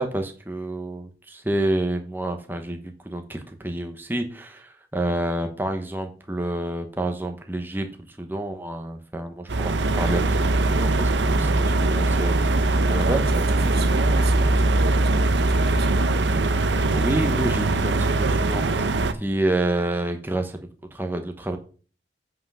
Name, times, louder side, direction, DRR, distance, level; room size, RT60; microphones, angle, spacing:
voice 1, 0.0-10.2 10.7-12.4 12.7-13.2 16.9-21.6, right 1 dB, 10° right, 1.0 m, -29 dB
sound 1, 9.5-19.1, right 2 dB, 85° right, 0.8 m, -21 dB
voice 2, 12.8-16.2, right 3 dB, 60° right, 1.2 m, -35 dB
8.2 x 5.7 x 5.6 m
head